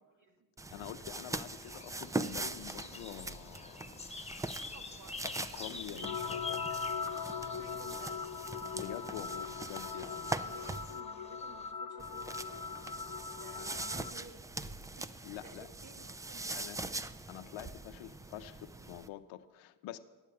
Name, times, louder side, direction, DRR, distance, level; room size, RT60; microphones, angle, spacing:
sound 1, 0.6-11.0 12.0-19.1, right 2 dB, 10° right, 0.3 m, -42 dB
voice 1, 0.7-4.0 5.2-6.6 8.7-10.4 13.5-13.7 15.2-15.7 16.5-16.8 17.3-20.0, left 12 dB, 75° left, 9 dB, 0.7 m, -46 dB
sound 2, 1.5-11.7, left 3 dB, 15° left, 1.1 m, -48 dB
voice 2, 4.6-5.2 5.9-8.5 10.2-17.1, right 4 dB, 40° right, 7 dB, 1.9 m, -57 dB
sound 3, 6.0-14.1, left 6 dB, 45° left, 0.9 m, -40 dB
10.0 x 7.4 x 8.4 m, 1.2 s
supercardioid pair, 60°, 47 cm